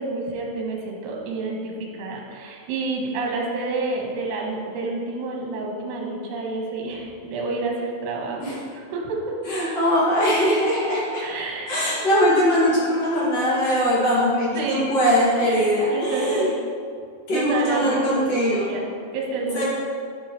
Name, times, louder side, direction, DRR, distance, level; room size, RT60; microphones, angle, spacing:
voice 1, 0.0-9.4 11.2-11.7 12.1-12.2 14.5-14.9 15.4-16.6 17.3-18.9 19.1-19.6, right 3 dB, 70° right, -1 dB, 3.1 m, -29 dB
voice 2, 9.4-11.2 11.7-16.5 17.3-18.7 19.5-19.6, equal, 40° left, -8 dB, 2.4 m, -21 dB
12.0 x 7.4 x 3.2 m, 2.2 s
omnidirectional pair, 5.8 m